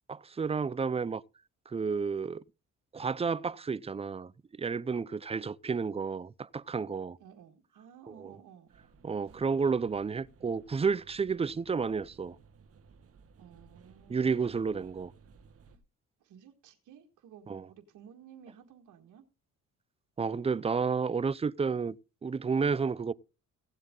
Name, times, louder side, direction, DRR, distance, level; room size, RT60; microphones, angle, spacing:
voice 1, 0.1-1.2 1.7-2.4 2.9-4.3 4.6-7.2 8.2-8.3 9.0-12.4 14.1-15.1 17.5-17.7 20.2-22.0 22.2-23.1, right 5 dB, 20° right, 0.5 m, -31 dB
voice 2, 7.2-8.7 11.3-11.7 13.4-14.4 15.7-15.8 16.2-19.2, right 8 dB, 80° right, 1.8 m, -55 dB
sound 1, 8.7-15.8, right 5 dB, 50° right, 1.6 m, -58 dB
17.0 x 7.9 x 3.7 m
cardioid pair, 90°, 30 cm